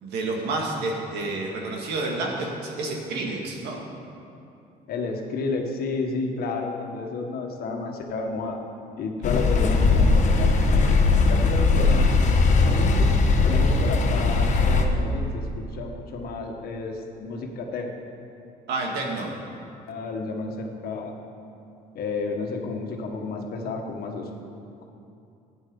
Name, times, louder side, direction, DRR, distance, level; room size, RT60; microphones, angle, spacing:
voice 1, 0.0-3.8 18.7-19.3, right 2 dB, 80° right, 0 dB, 2.0 m, -29 dB
voice 2, 4.9-8.6 9.0-12.1 12.6-13.1 13.4-17.9 19.9-21.1 21.9-24.3, left 3 dB, 65° left, 2 dB, 1.5 m, -31 dB
sound 1, 9.2-14.8, left 3 dB, 45° left, 1.1 m, -19 dB
11.5 x 9.1 x 5.4 m, 2.6 s
cardioid pair, 110°, 17 cm